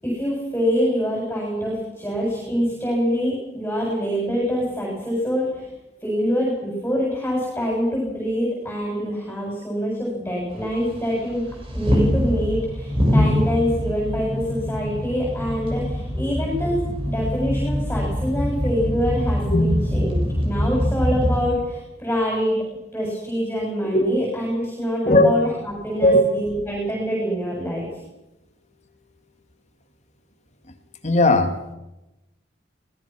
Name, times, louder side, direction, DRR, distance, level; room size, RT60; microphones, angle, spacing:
voice 1, 0.0-5.7 6.0-11.4 11.7-22.6 22.9-27.8, equal, 10° left, -3 dB, 7.5 m, -25 dB
sound 1, 10.5-21.4, equal, 30° right, 6.2 m, -24 dB
voice 2, 19.5-19.8 20.5-20.6 23.9-24.0 25.0-25.3 26.0-26.2 31.0-31.5, left 1 dB, 40° left, 6 dB, 2.4 m, -17 dB
24.5 x 19.0 x 6.2 m, 0.95 s
head